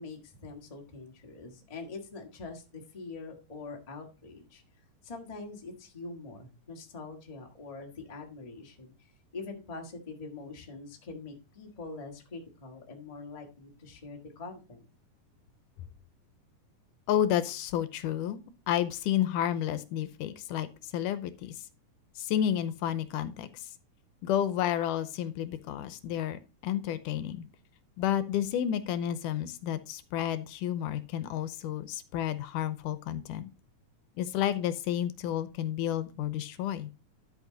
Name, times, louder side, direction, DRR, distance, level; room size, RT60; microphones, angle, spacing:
voice 1, 0.0-4.6 5.0-8.9 9.3-14.8, left 3 dB, 25° left, 1 dB, 0.9 m, -44 dB
voice 2, 17.1-18.4 18.7-21.6 22.2-23.5 24.2-27.5 28.0-33.5 34.2-36.9, left 10 dB, 85° left, 13 dB, 2.2 m, -31 dB
12.0 x 5.3 x 3.8 m, 0.31 s
omnidirectional pair, 3.7 m